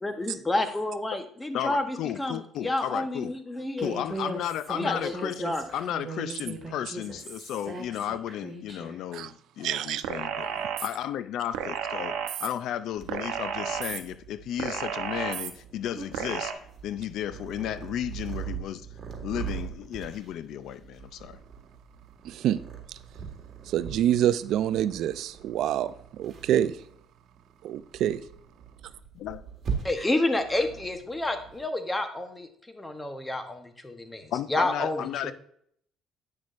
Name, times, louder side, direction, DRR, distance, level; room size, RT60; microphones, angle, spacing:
voice 1, 0.0-3.9 4.7-5.6 29.8-35.3, left 2 dB, 15° left, 1.0 m, -30 dB
voice 2, 1.5-3.3 3.8-18.9 19.2-21.4 29.1-29.4 34.3-35.3, left 11 dB, 70° left, 0.4 m, -34 dB
Human voice, 3.8-9.0, right 2 dB, 20° right, 2.0 m, -38 dB
voice 3, 9.6-10.0 22.2-22.6 23.7-25.9 26.2-26.7 27.6-28.2, right 11 dB, 70° right, 0.4 m, -26 dB
sound 1, 10.0-10.9 11.5-12.5 13.1-14.0 14.6-15.5 16.1-16.5, right 8 dB, 85° right, 0.8 m, -32 dB
Purr, 12.9-31.6, right 7 dB, 40° right, 1.6 m, -41 dB
8.5 x 6.2 x 2.5 m
cardioid pair, 100°, 0 cm